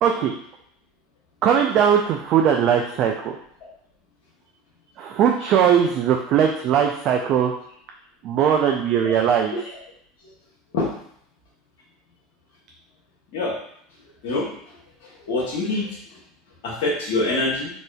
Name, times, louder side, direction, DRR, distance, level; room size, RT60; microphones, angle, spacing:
voice 1, 0.0-0.3 1.4-3.4 5.0-7.5 8.2-9.5, right 8 dB, 50° right, 2 dB, 0.3 m, -19 dB
voice 2, 15.3-15.9 16.6-17.7, left 2 dB, 70° left, -4 dB, 0.8 m, -24 dB
3.4 x 2.5 x 2.2 m, 0.67 s
hypercardioid pair, 90°, 0 cm